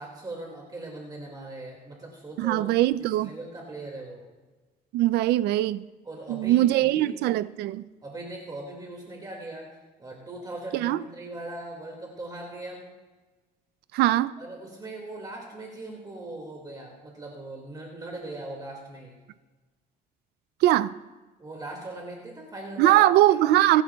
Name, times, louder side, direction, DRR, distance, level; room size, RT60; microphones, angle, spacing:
voice 1, 0.0-2.7 3.0-4.2 6.0-7.2 8.0-12.9 14.4-19.2 21.4-23.6, right 2 dB, 25° right, 2.0 m, -40 dB
voice 2, 2.4-3.3 4.9-5.9 6.3-7.9 10.7-11.0 13.9-14.3 20.6-20.9 22.8-23.8, right 14 dB, 75° right, 0.4 m, -21 dB
20.0 x 11.5 x 2.3 m
cardioid pair, 110°, 17 cm